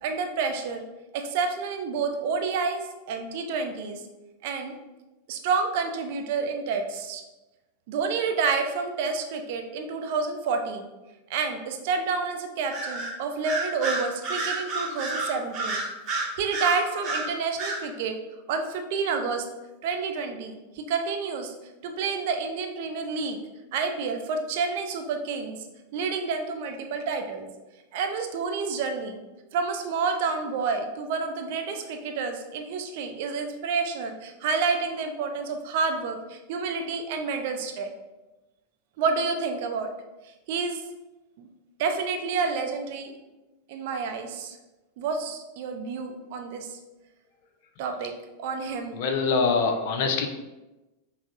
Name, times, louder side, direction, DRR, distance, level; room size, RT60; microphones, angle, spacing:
voice 1, 0.0-0.8 1.1-4.0 4.4-4.7 5.3-7.2 7.9-10.9 11.3-15.8 16.4-18.2 18.5-19.4 19.8-21.5 21.8-23.4 23.7-25.6 25.9-27.5 27.9-29.2 29.5-37.9 39.0-39.9 40.5-40.8 41.4-41.5 41.8-43.1 43.7-44.6 45.0-46.8 47.8-48.1 48.4-49.0, right 5 dB, 50° right, 5 dB, 0.4 m, -29 dB
Bird vocalization bird call bird song, 12.7-13.1 13.4-17.3 17.6-17.8, right 3 dB, 30° right, 0.9 m, -29 dB
voice 2, 48.9-50.3, left 4 dB, 50° left, 5 dB, 0.4 m, -24 dB
5.6 x 2.0 x 2.6 m, 1.1 s
figure-of-eight pair, 90°, 0 cm